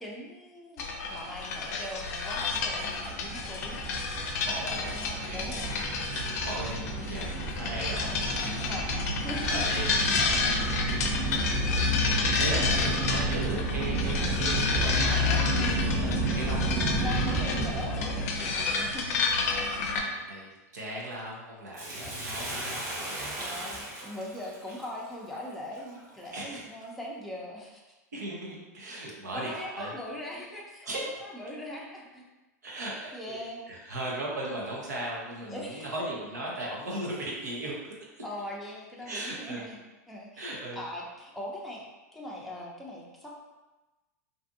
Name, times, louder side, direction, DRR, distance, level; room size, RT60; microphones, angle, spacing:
voice 1, 0.0-3.8 5.3-5.8 8.6-9.6 12.6-13.0 15.2-16.1 16.6-19.4 22.0-22.4 23.4-27.8 29.3-32.2 33.1-33.9 35.5-36.0 38.2-39.8 40.1-41.8 42.1-43.3, equal, ahead, -5 dB, 0.5 m, -40 dB
sound 1, 0.8-20.0, left 4 dB, 70° left, 0.4 m, -30 dB
sound 2, 2.5-19.5, right 3 dB, 60° right, 1.1 m, -32 dB
voice 2, 4.4-8.4 8.6-8.8 9.5-17.0 19.9-23.4 26.3-26.6 28.1-29.9 30.8-31.0 32.6-37.9 39.0-39.6 40.4-40.9, right 1 dB, 90° right, -3 dB, 0.7 m, -38 dB
Bathtub (filling or washing), 21.7-26.3 26.8-26.9, right 1 dB, 40° right, 0.8 m, -38 dB
2.6 x 2.4 x 2.5 m, 1.1 s
hypercardioid pair, 105°, 9 cm